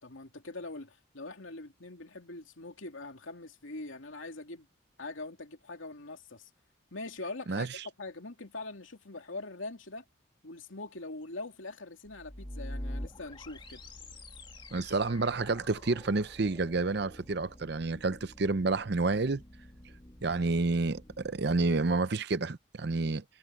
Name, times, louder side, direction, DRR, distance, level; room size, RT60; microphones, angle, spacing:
voice 1, 0.0-4.7 5.0-6.5 6.9-10.0 10.4-13.8, left 2 dB, 80° left, 2.7 m, -43 dB
sound 1, 12.1-22.0, left 1 dB, 25° left, 2.0 m, -46 dB
voice 2, 14.7-19.4 20.2-23.2, right 3 dB, 55° right, 0.7 m, -29 dB
head